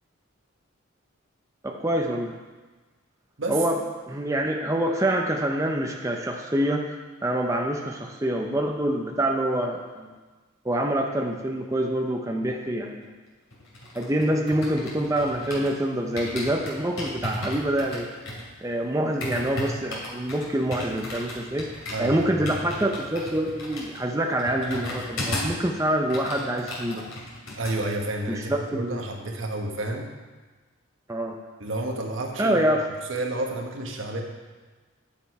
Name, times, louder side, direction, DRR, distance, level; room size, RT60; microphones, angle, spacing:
voice 1, 1.6-2.3 3.5-3.8 4.1-6.9 7.2-10.1 10.6-13.1 13.9-18.1 18.6-21.7 22.0-27.0 28.3-29.0 31.1-31.3 32.4-32.8, right 1 dB, 15° right, 1 dB, 0.6 m, -26 dB
sound 1, 13.5-15.8 16.2-25.6 25.9-27.8 28.0-28.3, left 1 dB, 80° left, 2.8 m, -35 dB
voice 2, 21.9-22.5 27.6-30.1 31.6-32.6 33.1-34.2, right 2 dB, 70° right, 1 dB, 1.3 m, -30 dB
9.3 x 7.2 x 4.7 m, 1.3 s
head